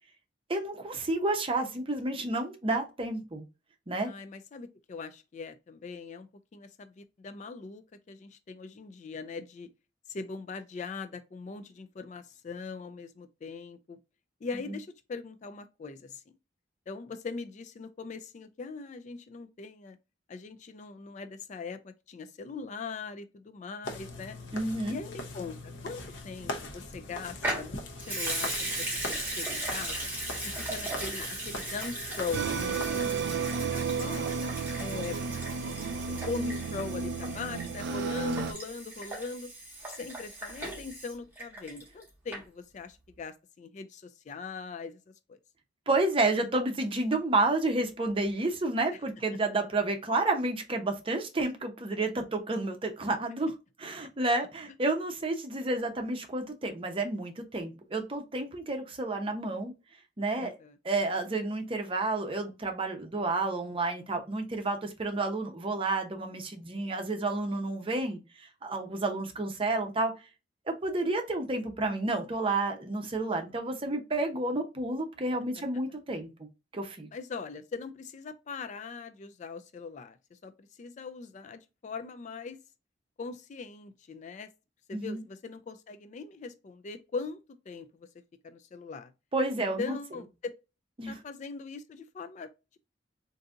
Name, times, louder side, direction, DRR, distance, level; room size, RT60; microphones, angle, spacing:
voice 1, 0.5-3.4 3.9-4.1 24.5-25.0 45.9-53.5 53.8-59.7 60.2-60.5 60.8-70.1 70.7-76.3 76.7-77.1 84.9-85.2 89.3-90.0 91.0-91.1, right 2 dB, 30° right, 0.7 m, -30 dB
voice 2, 4.0-9.7 10.1-14.0 14.4-16.3 16.9-20.0 20.3-24.4 24.9-30.0 30.4-33.4 33.7-34.3 34.8-35.2 36.1-39.5 39.9-45.0 45.3-45.4 60.4-60.8 77.1-82.6 83.2-84.5 84.9-88.1 88.4-89.1 89.6-90.5 91.1-92.5, left 4 dB, 40° left, 0.3 m, -41 dB
sound 1, 23.8-32.9, left 2 dB, 80° left, 0.8 m, -41 dB
Water tap faucet / Sink (filling or washing) / Liquid, 27.4-42.0 42.3-42.4, right 1 dB, 10° right, 1.4 m, -37 dB
sound 2, 32.3-38.5, right 5 dB, 65° right, 0.3 m, -32 dB
3.8 x 2.6 x 2.4 m
head